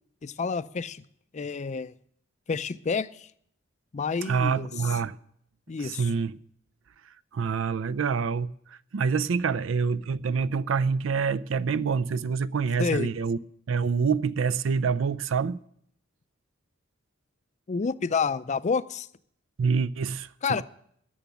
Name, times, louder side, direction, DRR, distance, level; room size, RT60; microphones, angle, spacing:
voice 1, 0.2-1.0 1.3-1.9 2.5-3.3 3.9-4.7 5.7-6.1 12.8-13.1 17.7-19.1 20.4-20.6, left 5 dB, 35° left, 0.4 m, -29 dB
voice 2, 4.3-5.2 5.8-6.4 7.3-8.5 8.9-13.4 13.7-15.6 19.6-20.3 20.6-20.7, right 5 dB, 70° right, 0.5 m, -26 dB
14.0 x 7.0 x 9.2 m
head